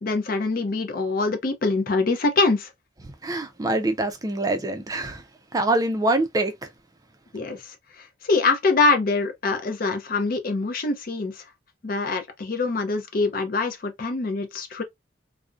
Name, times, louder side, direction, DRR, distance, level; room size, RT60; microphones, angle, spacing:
voice 1, 0.0-2.7 7.3-11.3 11.8-14.8, left 3 dB, 50° left, 0.5 m, -24 dB
voice 2, 3.2-5.2 5.5-6.7, right 2 dB, 20° right, 0.4 m, -24 dB
2.4 x 2.1 x 2.4 m
head